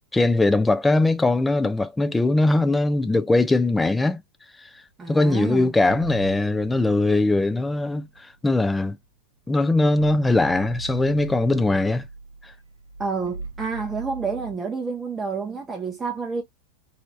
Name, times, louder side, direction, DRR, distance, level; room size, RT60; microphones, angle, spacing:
voice 1, 0.1-4.2 5.1-9.0 9.5-12.0 12.4-12.5, left 2 dB, 10° left, 0.5 m, -21 dB
voice 2, 5.0-5.7 13.0-16.4, right 5 dB, 15° right, 0.8 m, -29 dB
sound 1, 8.1-8.4 9.2-9.3 9.6-14.5, right 3 dB, 85° right, 0.7 m, -38 dB
3.2 x 2.7 x 2.9 m
hypercardioid pair, 90°, 0 cm